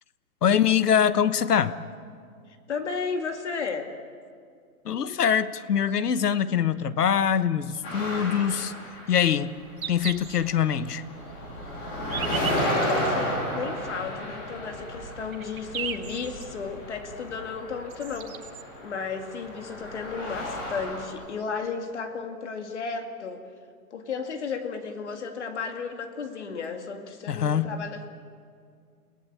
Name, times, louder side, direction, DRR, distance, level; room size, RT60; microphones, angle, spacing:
voice 1, 0.4-1.7 4.8-8.7 9.1-9.5 9.9-11.0 27.3-27.7, left 8 dB, 80° left, 14 dB, 1.2 m, -23 dB
voice 2, 2.5-3.9 13.0-18.6 18.8-23.5 23.9-28.1, left 5 dB, 45° left, 5 dB, 2.3 m, -34 dB
sound 1, 7.8-9.6 9.9-21.0, equal, 15° left, 3.1 m, -33 dB
sound 2, 8.3-8.5 9.3-9.4 9.8-10.4 10.9-11.0 11.8-13.1 13.9-14.0 14.7-14.8 15.1-16.4 17.6-17.7 17.9-18.6 20.1-20.2 20.4-20.5 21.2-21.3, right 8 dB, 60° right, 1.7 m, -36 dB
30.0 x 18.0 x 8.7 m, 2.2 s
hypercardioid pair, 175°, 46 cm